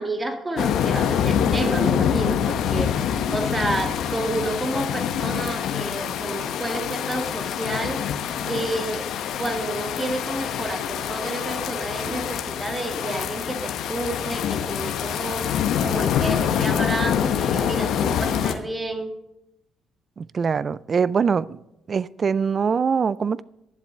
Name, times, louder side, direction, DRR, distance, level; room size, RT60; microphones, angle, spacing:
voice 1, 0.0-8.0 8.4-9.1 9.4-19.1, right 2 dB, 20° right, 1.8 m, -30 dB
sound 1, 0.6-18.5, left 8 dB, 70° left, 1.0 m, -25 dB
voice 2, 20.2-21.6 21.9-23.4, right 6 dB, 45° right, 0.4 m, -23 dB
11.5 x 7.6 x 6.5 m
supercardioid pair, 60°, 0 cm